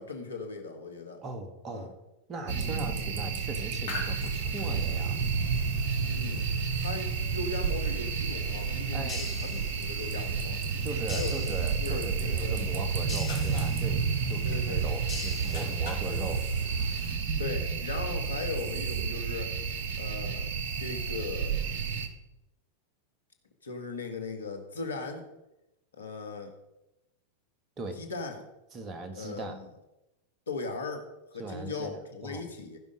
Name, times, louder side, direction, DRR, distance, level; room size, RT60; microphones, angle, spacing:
voice 1, 0.0-1.2 1.7-1.9 6.1-6.5 6.8-10.6 11.1-12.6 14.4-14.9 17.4-19.6 20.0-20.5 20.8-21.6 23.6-25.3 25.9-26.5 28.0-28.4 29.1-29.7 30.5-32.8, left 3 dB, 85° left, 5 dB, 1.7 m, -38 dB
voice 2, 1.2-1.9 2.3-5.2 8.9-9.2 10.8-16.5 27.8-28.0 28.7-29.6 31.4-32.4, right 3 dB, 35° right, 8 dB, 1.7 m, -39 dB
sound 1, 2.5-22.1, right 5 dB, 60° right, 1.1 m, -31 dB
sound 2, 3.9-17.2, left 3 dB, 60° left, 3.6 m, -45 dB
sound 3, 9.1-10.2 11.1-12.1 13.1-14.1 15.1-16.1, left 7 dB, 25° left, 1.1 m, -44 dB
15.5 x 5.5 x 5.1 m, 0.94 s
hypercardioid pair, 95°, 0 cm